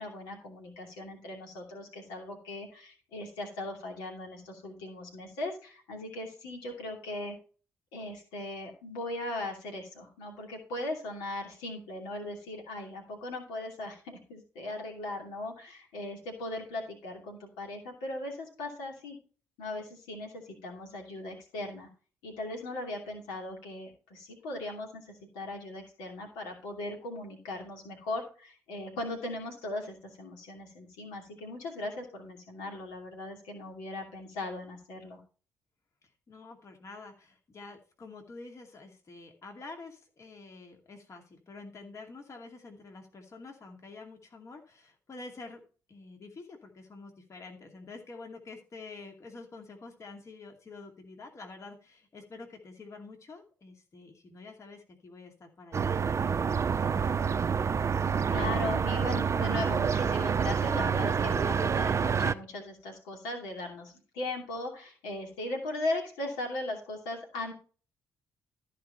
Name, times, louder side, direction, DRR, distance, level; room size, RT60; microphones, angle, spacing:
voice 1, 0.0-7.4 7.9-19.2 19.6-21.9 22.2-35.2 58.3-67.5, left 2 dB, 75° left, 1 dB, 2.7 m, -38 dB
voice 2, 36.3-45.6 45.9-57.1, left 3 dB, 45° left, 3 dB, 2.4 m, -48 dB
sound 1, 55.7-62.3, right 6 dB, 40° right, 0.6 m, -27 dB
14.0 x 5.0 x 4.3 m, 0.37 s
hypercardioid pair, 45°, 7 cm